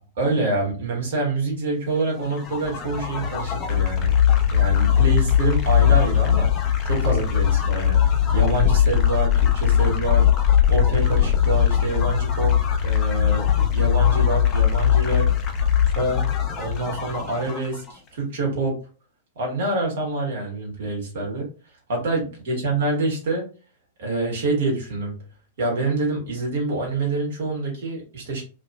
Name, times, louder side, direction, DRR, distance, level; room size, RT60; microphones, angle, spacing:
voice 1, 0.2-4.1 4.5-6.5 6.8-8.0 8.3-10.3 10.7-12.5 12.8-13.5 13.7-15.3 15.9-18.8 19.3-21.5 21.9-23.4 24.0-25.2 25.6-28.4, right 2 dB, 60° right, -1 dB, 1.4 m, -26 dB
sound 1, 2.2-17.9, left 9 dB, 30° left, 0.6 m, -20 dB
2.8 x 2.7 x 2.3 m, 0.37 s
figure-of-eight pair, 100°, 0 cm